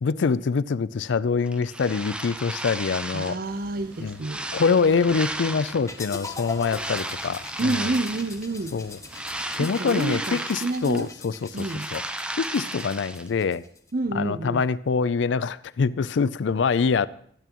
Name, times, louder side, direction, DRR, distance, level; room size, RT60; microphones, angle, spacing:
voice 1, 0.0-3.4 4.0-4.2 4.5-7.9 8.7-9.0 9.6-11.7 11.9-12.0 12.4-13.6 14.1-17.1, left 5 dB, 75° left, 0.4 m, -25 dB
sound 1, 1.5-3.5 3.9-6.0 6.6-8.4 8.8-11.1 11.4-13.3, right 1 dB, 5° right, 0.5 m, -34 dB
voice 2, 3.1-4.6 7.6-8.8 9.6-11.1 11.5-11.9 13.9-14.6, right 2 dB, 50° right, 0.6 m, -29 dB
sound 2, 3.4-9.7, right 1 dB, 65° right, 1.6 m, -50 dB
sound 3, 5.9-13.9, left 3 dB, 15° left, 0.9 m, -42 dB
21.0 x 9.1 x 3.0 m
head